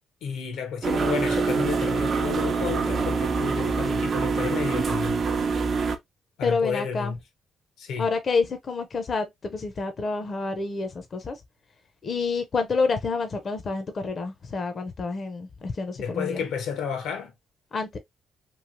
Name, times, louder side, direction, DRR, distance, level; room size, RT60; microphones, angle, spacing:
voice 1, 0.2-5.2 6.4-7.2 7.8-8.1 16.0-17.3, left 6 dB, 80° left, 0.9 m, -31 dB
sound 1, 0.8-6.0, right 4 dB, 50° right, 0.6 m, -25 dB
voice 2, 6.4-7.1 8.0-11.4 12.0-16.4 17.7-18.0, left 4 dB, 40° left, 0.6 m, -28 dB
3.1 x 2.7 x 2.6 m
cardioid pair, 90°, 0 cm